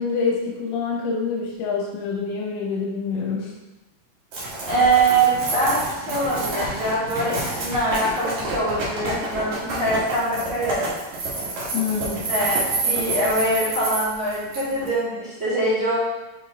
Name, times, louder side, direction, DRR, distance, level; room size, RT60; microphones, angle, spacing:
voice 1, 0.0-3.5 11.7-12.3, left 5 dB, 80° left, -1 dB, 3.0 m, -26 dB
sound 1, 4.3-14.9, right 2 dB, 55° right, 2.3 m, -28 dB
voice 2, 4.7-10.9 12.3-15.9, right 2 dB, 40° right, -12 dB, 2.1 m, -23 dB
7.4 x 3.8 x 3.6 m, 1.1 s
omnidirectional pair, 5.3 m